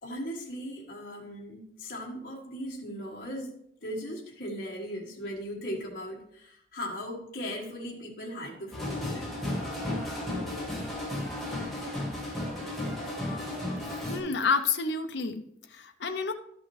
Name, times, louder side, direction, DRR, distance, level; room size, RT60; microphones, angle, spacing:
voice 1, 0.0-3.5 3.8-9.4, equal, 50° left, -4 dB, 1.6 m, -38 dB
sound 1, 8.7-14.2, left 1 dB, ahead, 1.8 m, -34 dB
voice 2, 14.1-16.3, left 4 dB, 75° left, 6 dB, 0.6 m, -29 dB
12.0 x 6.1 x 3.2 m, 0.74 s
head